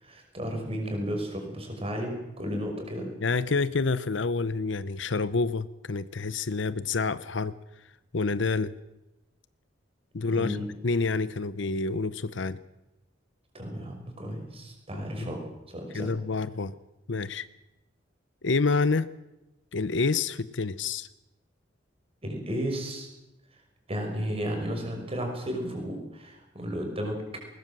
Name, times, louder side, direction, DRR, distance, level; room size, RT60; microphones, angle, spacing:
voice 1, 0.0-3.1 10.3-10.7 13.5-15.4 15.7-16.1 22.2-23.1 23.9-27.2, equal, 30° right, 3 dB, 5.8 m, -33 dB
voice 2, 3.2-7.6 8.1-8.7 10.1-10.6 10.8-12.6 15.2-15.3 15.9-16.8 17.1-17.5 18.4-19.1 19.7-21.1, left 4 dB, 70° left, 16 dB, 0.8 m, -28 dB
20.5 x 20.0 x 7.6 m, 0.96 s
head